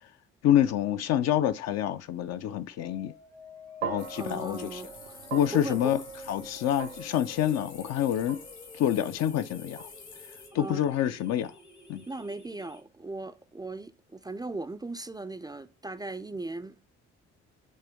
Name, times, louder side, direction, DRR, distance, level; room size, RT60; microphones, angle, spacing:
voice 1, 0.4-3.1 3.8-4.8 5.3-6.0 6.3-8.4 8.7-9.9 10.5-11.5 11.9-12.0, left 11 dB, 50° left, 0.6 m, -27 dB
sound 1, 2.8-12.8, left 3 dB, 90° left, 0.8 m, -51 dB
sound 2, 3.8-12.1, right 8 dB, 70° right, 0.7 m, -43 dB
sound 3, 4.0-10.5, left 5 dB, 70° left, 1.6 m, -49 dB
voice 2, 4.2-5.2 5.5-6.0 10.5-10.8 12.1-16.8, right 2 dB, 10° right, 0.5 m, -38 dB
5.5 x 3.4 x 5.0 m
figure-of-eight pair, 40°, 34 cm